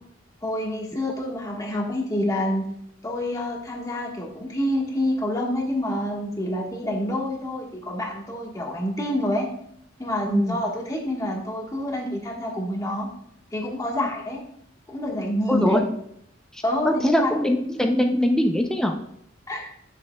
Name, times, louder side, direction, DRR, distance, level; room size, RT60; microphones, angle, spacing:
voice 1, 0.4-2.7 3.0-9.5 10.0-13.1 13.5-14.4 14.9-15.8 16.6-17.3 19.5-19.7, left 1 dB, 20° left, 0 dB, 1.4 m, -27 dB
voice 2, 15.5-15.8 16.9-19.0, left 1 dB, 5° left, 3 dB, 0.5 m, -21 dB
10.5 x 6.5 x 2.3 m, 0.72 s
head